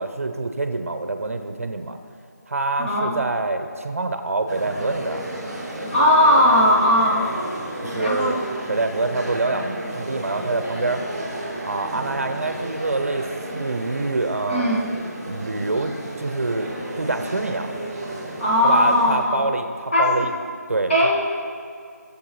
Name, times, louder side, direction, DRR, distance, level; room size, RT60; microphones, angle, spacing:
voice 1, 0.0-2.0 2.5-5.2 7.8-8.4 8.7-11.0 11.6-13.3 13.5-14.8 15.3-17.7 18.6-19.7 20.0-20.3 20.7-20.9, right 3 dB, 55° right, 7 dB, 0.7 m, -26 dB
voice 2, 2.8-3.2 5.9-7.3 7.8-8.4 14.5-14.9 18.4-19.5 19.9-20.3 20.9-21.4, left 1 dB, 40° left, -6 dB, 2.1 m, -18 dB
sound 1, 4.5-19.2, right 1 dB, 5° right, 1.3 m, -33 dB
16.5 x 7.3 x 3.1 m, 2.2 s
figure-of-eight pair, 170°, 9 cm